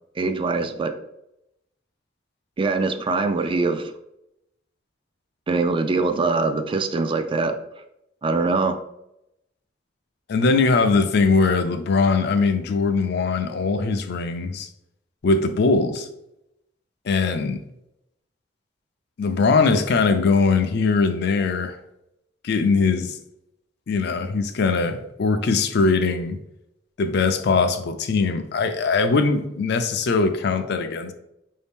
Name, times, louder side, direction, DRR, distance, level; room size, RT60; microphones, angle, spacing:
voice 1, 0.2-0.9 2.6-3.9 5.5-7.5 8.2-8.8, right 3 dB, 25° right, 0.3 m, -23 dB
voice 2, 10.3-14.7 15.2-16.1 17.0-17.6 19.2-21.8 22.4-23.2 23.9-26.4 27.0-31.1, left 4 dB, 60° left, 0.4 m, -21 dB
4.9 x 2.7 x 3.5 m
head